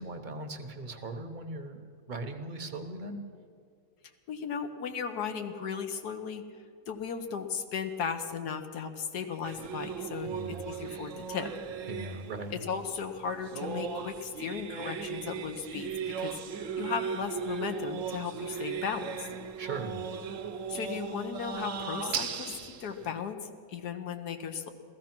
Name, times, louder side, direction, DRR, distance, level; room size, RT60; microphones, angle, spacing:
voice 1, 0.0-1.8 2.1-3.2 10.3-10.8 11.9-12.6 19.6-20.0, right 2 dB, 35° right, 6 dB, 1.0 m, -39 dB
voice 2, 4.3-6.4 6.9-10.3 10.6-11.5 12.7-15.9 16.2-16.4 16.8-19.3 20.7-24.7, left 6 dB, 80° left, 6 dB, 1.4 m, -36 dB
sound 1, 9.4-23.1, right 7 dB, 60° right, 1.1 m, -37 dB
15.5 x 14.0 x 6.0 m, 2.2 s
omnidirectional pair, 1.7 m